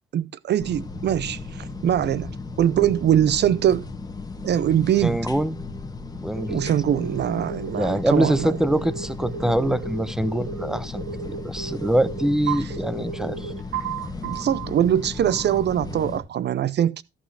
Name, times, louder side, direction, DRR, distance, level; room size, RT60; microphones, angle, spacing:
voice 1, 0.1-3.9 4.4-5.2 6.5-8.6 14.2-17.0, right 10 dB, 60° right, 0.6 m, -22 dB
sound 1, 0.6-16.2, left 3 dB, 20° left, 2.5 m, -35 dB
voice 2, 5.0-5.5 6.2-6.6 7.7-13.5, right 1 dB, 5° right, 0.9 m, -24 dB
sound 2, 6.3-14.7 15.3-15.7, right 7 dB, 80° right, 2.8 m, -34 dB
14.0 x 5.7 x 4.8 m
cardioid pair, 90°, 20 cm